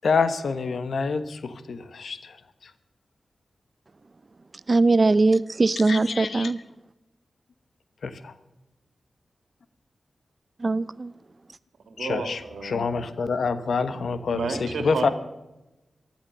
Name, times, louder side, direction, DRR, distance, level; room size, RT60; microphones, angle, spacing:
voice 1, 0.0-2.3 5.9-6.5 8.0-8.3 12.0-15.1, left 4 dB, 80° left, 1.2 m, -27 dB
voice 2, 4.7-6.6 10.6-11.1, right 3 dB, 45° right, 0.6 m, -21 dB
voice 3, 11.9-12.9 14.3-15.1, right 4 dB, 90° right, 2.1 m, -31 dB
14.5 x 12.0 x 6.8 m
cardioid pair, 50°, 0 cm